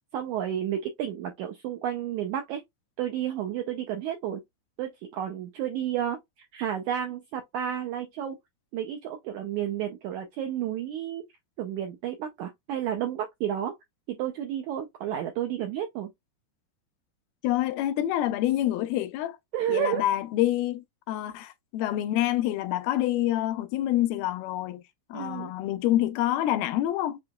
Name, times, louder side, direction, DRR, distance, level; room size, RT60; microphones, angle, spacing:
voice 1, 0.1-2.6 3.0-4.4 4.8-8.4 8.7-11.2 11.6-13.8 14.1-16.1 19.5-20.0 25.1-25.5, right 10 dB, 90° right, 1.7 m, -31 dB
voice 2, 17.4-19.4 19.7-24.8 25.1-27.2, left 13 dB, 85° left, 2.5 m, -27 dB
7.7 x 2.8 x 2.2 m
omnidirectional pair, 4.2 m